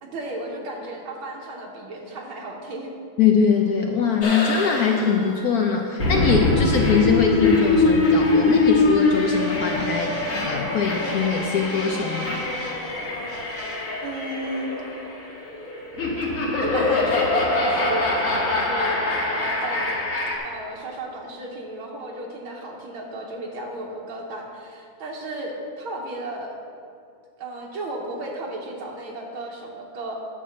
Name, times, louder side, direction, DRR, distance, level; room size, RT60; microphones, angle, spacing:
voice 1, 0.0-2.9 14.0-14.7 16.6-20.0 20.4-26.5 27.4-30.1, right 1 dB, 75° right, -2 dB, 1.8 m, -34 dB
voice 2, 3.2-12.4, left 6 dB, 75° left, 2 dB, 0.8 m, -22 dB
sound 1, 4.2-20.4, left 2 dB, 40° left, 2.1 m, -23 dB
10.0 x 4.8 x 7.0 m, 2.4 s
omnidirectional pair, 2.3 m